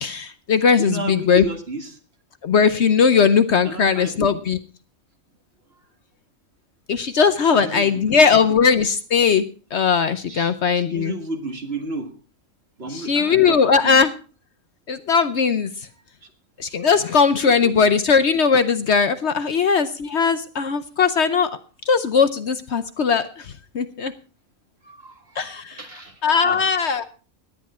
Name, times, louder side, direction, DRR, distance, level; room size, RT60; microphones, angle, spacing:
voice 1, 0.0-1.5 2.4-4.6 6.9-9.5 9.7-11.1 12.9-14.1 14.9-15.7 16.6-21.5 21.9-24.1 25.4-25.8 26.2-27.0, left 6 dB, 55° left, 11 dB, 1.0 m, -19 dB
voice 2, 0.8-2.0 3.6-4.4 7.4-8.2 10.3-12.1 12.8-14.0 16.2-16.3 17.5-17.9 24.8-25.4 25.7-26.7, right 3 dB, 45° right, 5 dB, 2.1 m, -33 dB
17.5 x 11.0 x 4.3 m, 0.36 s
omnidirectional pair, 1.5 m